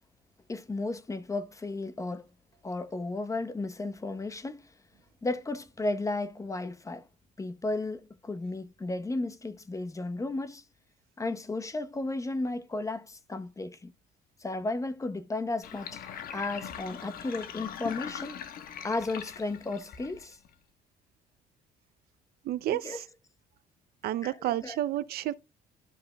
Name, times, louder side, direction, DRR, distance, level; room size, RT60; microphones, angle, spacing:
voice 1, 0.5-2.3 2.6-4.7 5.2-7.0 7.4-10.6 11.2-13.9 14.4-18.4 18.8-20.4 22.7-23.0 24.2-24.8, left 2 dB, 20° left, 0.9 m, -34 dB
Sink (filling or washing), 15.6-20.5, left 8 dB, 60° left, 1.3 m, -41 dB
voice 2, 22.4-23.0 24.0-25.3, right 13 dB, 65° right, 0.5 m, -30 dB
12.5 x 5.2 x 2.3 m
cardioid pair, 110°, 17 cm